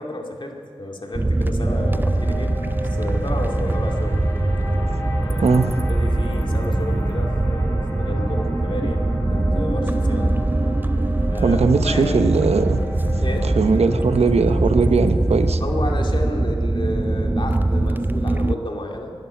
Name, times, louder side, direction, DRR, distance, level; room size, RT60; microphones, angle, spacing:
voice 1, 0.0-2.6 2.9-4.2 5.1-5.5 5.9-10.4 11.3-11.6 11.8-12.3 13.2-13.5 15.6-19.1, left 1 dB, 50° left, 1 dB, 2.3 m, -31 dB
sound 1, 1.1-18.5, right 2 dB, 20° right, 0.5 m, -22 dB
sound 2, 1.6-17.9, left 1 dB, 25° left, 5.4 m, -35 dB
voice 2, 11.4-12.8 13.6-15.6, right 4 dB, 90° right, 10 dB, 0.8 m, -19 dB
11.5 x 11.5 x 10.0 m, 2.1 s
cardioid pair, 50°, 10 cm